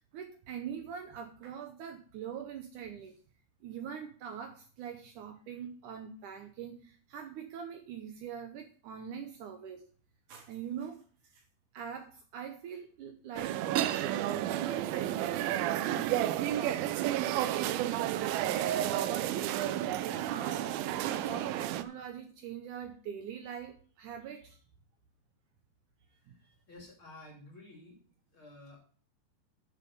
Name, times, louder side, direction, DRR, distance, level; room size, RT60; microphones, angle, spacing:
voice 1, 0.1-3.1 3.6-9.9 10.3-11.0 11.3-11.4 11.7-20.7 21.1-24.6 26.3-26.5, right 8 dB, 70° right, 6 dB, 2.1 m, -43 dB
sound 1, 13.4-21.8, right 12 dB, 90° right, 2.5 m, -31 dB
voice 2, 26.2-28.0 28.3-28.8, left 2 dB, 35° left, -1 dB, 3.2 m, -52 dB
9.5 x 7.0 x 5.2 m, 0.44 s
omnidirectional pair, 4.2 m